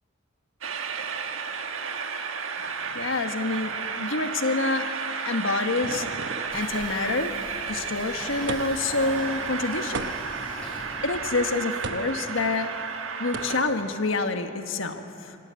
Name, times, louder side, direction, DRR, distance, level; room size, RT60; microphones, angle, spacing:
Train, 0.6-13.6, right 5 dB, 75° right, 1.4 m, -33 dB
voice 1, 2.8-4.9 5.2-6.1 6.5-7.3 7.7-10.1 11.0-12.7 13.2-15.4, left 3 dB, 70° left, 7 dB, 1.3 m, -27 dB
sound 1, 5.0-6.6 8.5-9.0 9.9-10.5 11.8-12.2 13.3-13.8, right 3 dB, 60° right, 0.9 m, -35 dB
Train / Sliding door, 6.4-11.5, equal, 5° left, 7.1 m, -41 dB
24.5 x 14.0 x 9.2 m, 2.8 s
head